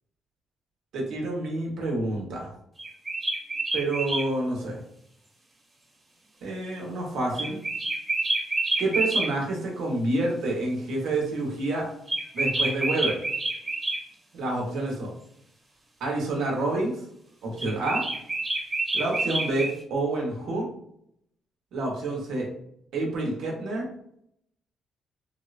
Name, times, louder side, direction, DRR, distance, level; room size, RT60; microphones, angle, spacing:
voice 1, 0.9-2.5 3.7-4.8 6.4-7.6 8.8-11.9 12.3-13.2 14.3-15.1 16.0-17.0 17.4-18.1 18.9-20.7 21.7-22.5 22.9-23.9, right 2 dB, 75° right, -1 dB, 0.9 m, -28 dB
sound 1, 2.8-4.3 7.3-9.3 12.1-14.0 17.6-19.8, right 2 dB, 30° right, 0.9 m, -28 dB
3.1 x 2.0 x 2.4 m, 0.72 s
cardioid pair, 90°, 0 cm